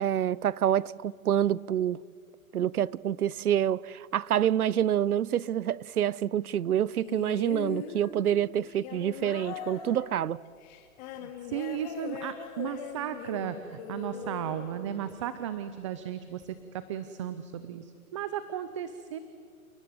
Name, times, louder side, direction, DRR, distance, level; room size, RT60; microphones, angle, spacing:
voice 1, 0.0-2.0 2.5-10.4, right 10 dB, 85° right, 0.8 m, -27 dB
sound 1, 7.0-15.4 16.4-16.5, left 7 dB, 30° left, 2.5 m, -41 dB
voice 2, 11.1-19.2, right 10 dB, 20° right, 0.6 m, -35 dB
28.5 x 18.0 x 9.6 m
hypercardioid pair, 150°, 43 cm